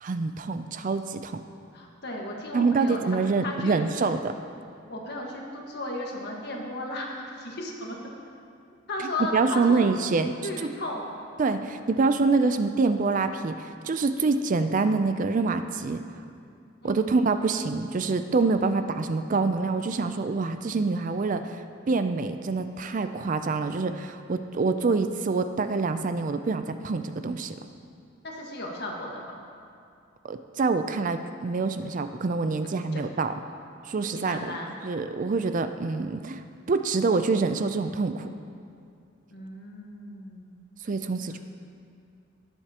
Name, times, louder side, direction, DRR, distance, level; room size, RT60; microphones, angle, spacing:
voice 1, 0.0-1.4 2.5-4.3 9.3-10.7 11.4-16.0 16.8-21.6 21.9-27.5 30.3-33.3 33.9-34.5 34.8-36.4 36.7-38.3 40.8-41.4, right 4 dB, 40° right, 9 dB, 0.4 m, -26 dB
voice 2, 1.7-3.2 3.4-4.0 4.9-8.0 8.9-9.8 10.4-11.1 16.8-17.1 28.2-29.4 32.9-33.0 34.1-34.8 39.3-40.6, left 1 dB, 55° left, -1 dB, 1.6 m, -35 dB
18.0 x 7.9 x 2.9 m, 2.4 s
head